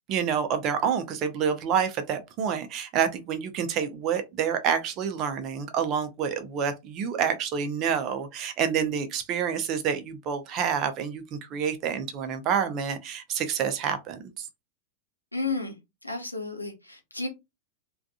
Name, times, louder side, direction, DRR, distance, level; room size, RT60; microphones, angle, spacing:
voice 1, 0.1-14.5, right 7 dB, 35° right, 0.6 m, -28 dB
voice 2, 15.3-15.7 16.0-17.3, left 3 dB, 85° left, 0.8 m, -32 dB
3.5 x 2.4 x 2.4 m
figure-of-eight pair, 90°, 0 cm